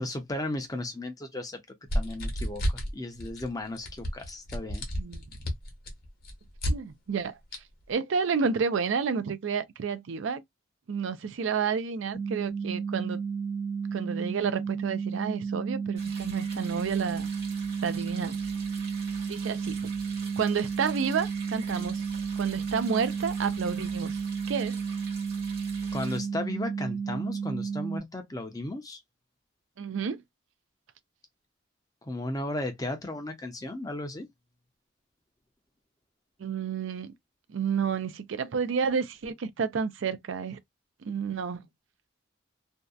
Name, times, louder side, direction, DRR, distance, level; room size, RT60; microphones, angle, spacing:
voice 1, 0.0-1.6 1.9-4.9 25.9-29.0 32.0-34.3, left 1 dB, 20° left, 0.5 m, -35 dB
sound 1, 1.9-2.9 3.2-3.5 3.8-6.7 7.5-7.6, equal, 45° left, 0.9 m, -30 dB
voice 2, 6.7-7.4 7.9-10.4 10.9-13.2 13.9-17.3 17.8-18.4 19.3-19.8 20.4-22.0 22.4-24.2 24.5-24.8 29.8-30.2 36.4-37.1 37.5-40.6 41.0-41.6, right 6 dB, 70° right, 0.4 m, -30 dB
sound 2, 12.1-28.0, right 6 dB, 80° left, 0.8 m, -32 dB
sound 3, 16.0-26.2, right 3 dB, 50° right, 1.1 m, -46 dB
2.6 x 2.1 x 2.3 m
head